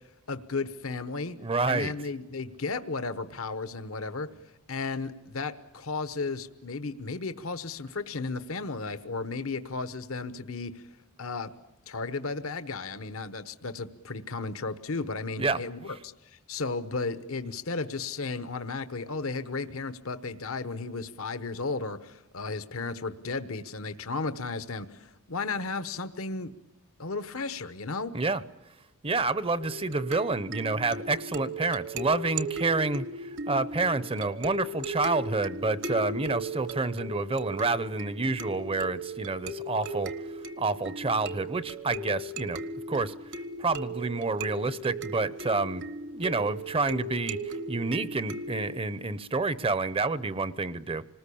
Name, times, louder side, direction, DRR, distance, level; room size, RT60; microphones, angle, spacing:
voice 1, 0.3-1.4 1.7-4.3 4.7-10.9 11.2-11.5 11.9-26.5 27.0-28.1, left 3 dB, 70° left, 11 dB, 1.1 m, -34 dB
voice 2, 1.3-1.9 15.4-15.6 28.1-28.4 29.0-40.1 40.6-42.6 42.9-43.1 43.6-51.0, right 3 dB, 25° right, 16 dB, 0.8 m, -29 dB
sound 1, 29.6-48.8, right 1 dB, 55° right, 1.4 m, -37 dB
27.0 x 20.0 x 8.5 m, 1.0 s
head